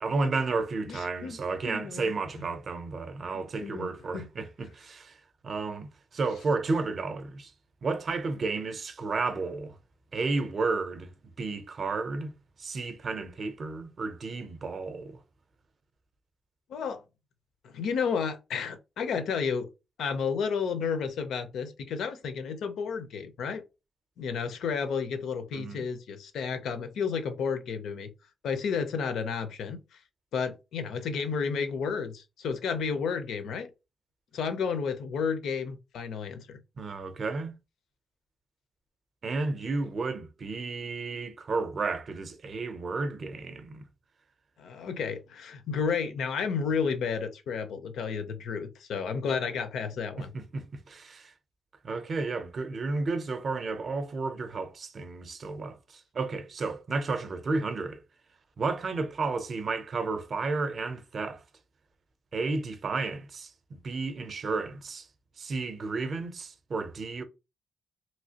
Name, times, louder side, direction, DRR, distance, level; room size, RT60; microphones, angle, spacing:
voice 1, 0.0-5.1 5.4-7.5 7.8-9.7 10.1-11.1 11.4-12.3 12.6-15.2 25.5-25.8 36.8-37.5 39.2-43.8 50.2-51.3 51.8-58.0 58.6-61.4 62.3-65.1 65.4-67.2, right 3 dB, 40° right, 0.5 m, -32 dB
voice 2, 0.9-1.4 1.6-2.5 3.3-4.3 16.7-17.0 17.6-19.7 20.0-23.6 24.2-28.1 28.4-29.8 30.3-33.7 34.3-36.6 44.6-50.3, left 6 dB, 75° left, 0.6 m, -32 dB
3.0 x 2.8 x 2.8 m
cardioid pair, 140°, 0 cm